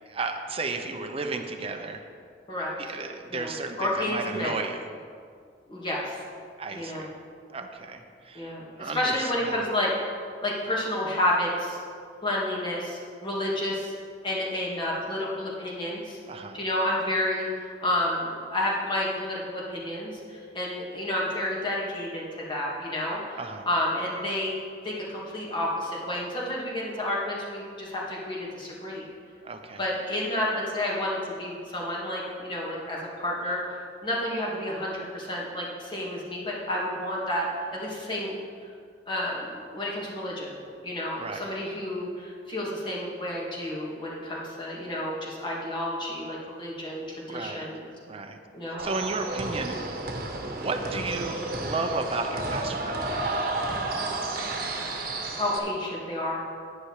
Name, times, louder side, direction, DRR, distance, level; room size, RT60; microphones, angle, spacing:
voice 1, 0.1-2.0 2.8-4.9 6.6-7.1 7.5-9.6 16.3-16.6 23.4-23.7 29.4-29.8 41.2-41.5 47.3-47.7 48.1-48.4 48.7-50.0 50.5-53.1, right 3 dB, 35° right, 5 dB, 0.8 m, -33 dB
voice 2, 3.3-4.6 5.7-6.2 6.7-7.1 8.3-9.9 10.4-11.8 12.2-13.9 14.2-16.2 16.5-23.4 23.7-24.6 24.8-29.0 29.8-33.6 34.0-38.3 39.1-40.5 40.8-47.8 48.5-48.9 55.4-56.4, left 1 dB, 30° left, -5 dB, 2.4 m, -30 dB
sound 1, 48.8-55.6, right 2 dB, 55° right, 1.2 m, -31 dB
9.7 x 9.5 x 4.8 m, 2.2 s
head